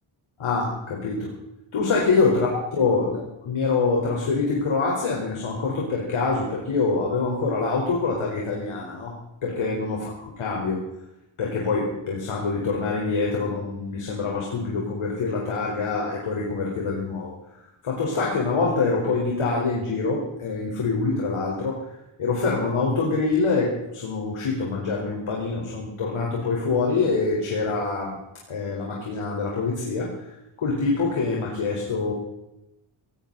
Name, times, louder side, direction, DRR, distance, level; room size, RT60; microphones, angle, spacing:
voice 1, 0.4-1.3 1.7-9.2 9.4-10.9 11.4-17.3 17.8-21.8 22.2-28.2 28.5-30.1 30.6-32.1, left 4 dB, 75° left, -2 dB, 4.4 m, -25 dB
19.5 x 18.0 x 4.0 m, 0.90 s
wide cardioid pair, 170°, 50 cm